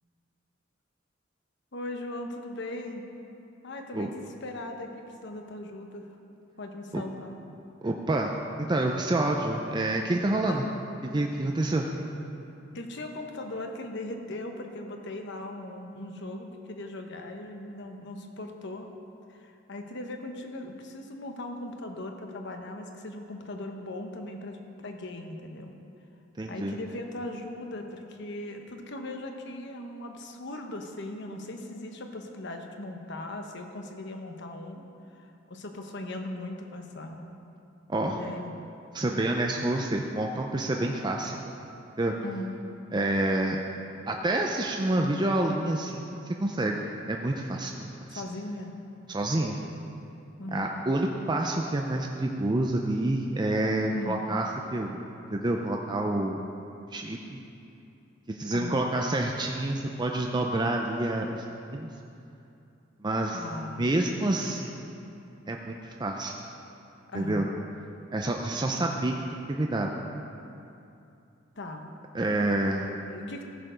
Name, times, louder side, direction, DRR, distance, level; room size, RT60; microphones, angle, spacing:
voice 1, 1.7-3.0 3.6-6.1 6.6-7.4 10.4-10.8 12.7-18.9 19.3-25.7 26.5-37.2 38.0-38.5 42.2-42.5 48.1-48.7 50.4-50.8 53.9-54.2 58.5-58.9 63.3-64.0 67.1-67.6 71.6-71.9 72.7-73.4, left 1 dB, 60° left, 4 dB, 1.0 m, -39 dB
voice 2, 7.8-8.3 8.7-10.6 11.1-11.9 26.4-26.7 37.9-38.2 38.9-41.4 42.0-42.1 42.9-43.6 44.1-48.2 49.1-49.6 50.5-56.4 56.9-57.4 58.3-61.4 61.7-61.9 63.0-63.4 63.8-65.0 65.5-66.3 67.1-67.5 68.1-69.9 72.1-72.8, right 1 dB, 20° right, 1 dB, 0.5 m, -28 dB
14.5 x 6.9 x 5.1 m, 2.7 s
head